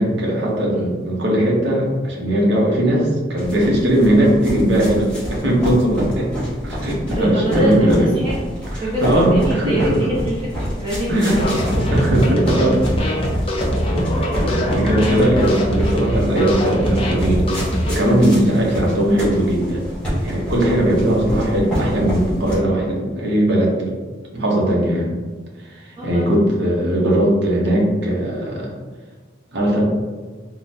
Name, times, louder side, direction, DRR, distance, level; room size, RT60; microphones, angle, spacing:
voice 1, 0.0-6.3 6.6-8.1 9.0-10.0 11.1-11.3 11.9-12.8 13.9-17.5 17.9-19.9 20.2-23.9 24.3-25.1 25.6-28.7 29.5-29.8, right 1 dB, 65° right, -3 dB, 0.8 m, -19 dB
sound 1, 3.4-22.6, equal, 5° left, 1.0 m, -28 dB
voice 2, 7.1-8.5 8.8-12.2 14.1-14.3 25.9-26.5, right 1 dB, 25° right, -9 dB, 0.7 m, -24 dB
sound 2, 11.4-18.0, equal, 30° left, 0.4 m, -22 dB
3.7 x 2.1 x 2.7 m, 1.4 s
head